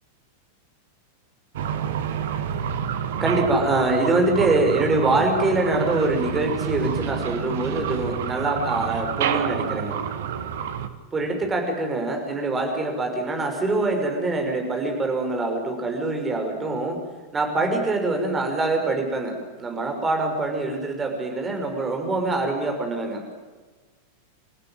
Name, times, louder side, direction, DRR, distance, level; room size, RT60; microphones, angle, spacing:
sound 1, 1.5-10.9, right 8 dB, 55° right, 1.7 m, -28 dB
voice 1, 3.2-10.0 11.1-17.0 17.3-23.2, right 2 dB, 15° right, 3 dB, 5.8 m, -24 dB
28.5 x 15.5 x 9.1 m, 1.3 s
figure-of-eight pair, 90°, 0 cm